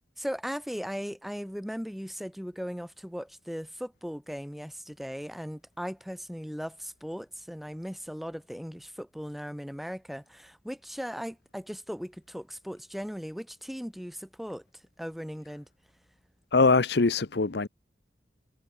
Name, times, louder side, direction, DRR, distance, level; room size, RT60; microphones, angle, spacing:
voice 1, 0.2-14.6 15.0-15.7, equal, ahead, 2.1 m, -38 dB
voice 2, 16.5-17.7, left 3 dB, 65° left, 0.8 m, -22 dB
head